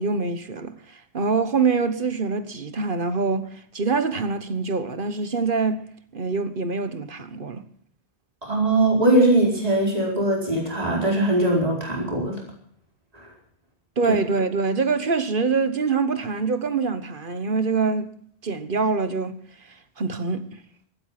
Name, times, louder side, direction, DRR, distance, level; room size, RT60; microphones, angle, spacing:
voice 1, 0.0-7.6 14.0-18.1 18.4-19.3 20.0-20.6, right 4 dB, 55° right, 1.4 m, -25 dB
voice 2, 8.4-12.4 14.1-14.2, right 1 dB, 35° right, 4.8 m, -21 dB
16.0 x 13.5 x 5.9 m
omnidirectional pair, 1.1 m